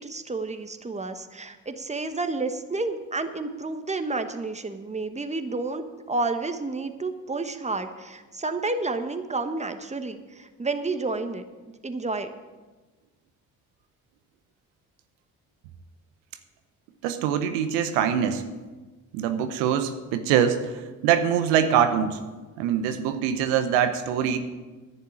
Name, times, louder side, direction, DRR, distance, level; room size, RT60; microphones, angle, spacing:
voice 1, 0.0-11.4 11.8-12.3, right 3 dB, 15° right, 8 dB, 1.3 m, -30 dB
voice 2, 17.0-18.4 19.1-22.2 22.6-24.4, right 9 dB, 90° right, 8 dB, 0.8 m, -23 dB
10.5 x 6.8 x 8.8 m, 1.3 s
hypercardioid pair, 55°, 39 cm